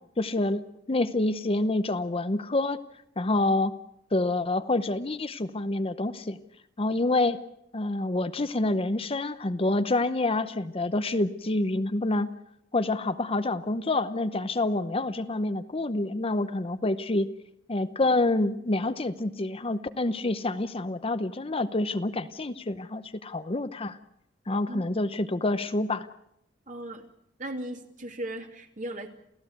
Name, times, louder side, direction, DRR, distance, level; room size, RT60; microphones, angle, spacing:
voice 1, 0.2-0.6 0.9-2.8 3.2-3.7 4.1-6.4 6.8-7.4 7.7-12.3 12.7-17.3 17.7-24.0 24.5-26.1, left 2 dB, 30° left, 11 dB, 0.8 m, -27 dB
voice 2, 26.7-27.1 27.4-29.1, right 1 dB, 45° right, 4 dB, 2.6 m, -37 dB
29.0 x 16.0 x 8.0 m, 0.77 s
head